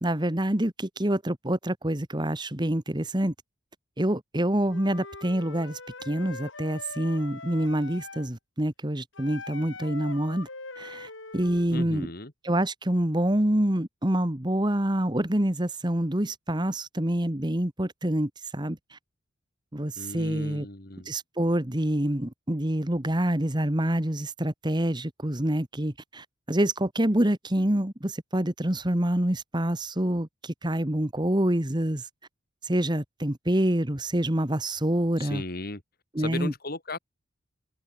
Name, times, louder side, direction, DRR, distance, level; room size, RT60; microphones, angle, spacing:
voice 1, 0.0-3.3 4.0-10.5 10.8-12.1 12.4-19.0 19.7-20.7 21.0-32.1 32.6-35.4 36.1-36.5, right 1 dB, 20° right, 1.6 m, -27 dB
Wind instrument woodwind instrument, 4.7-8.3 9.1-11.7, left 3 dB, 65° left, 5.2 m, -42 dB
voice 2, 11.7-12.3 20.0-21.1 35.2-35.8 36.2-37.0, left 2 dB, 45° left, 3.1 m, -35 dB
head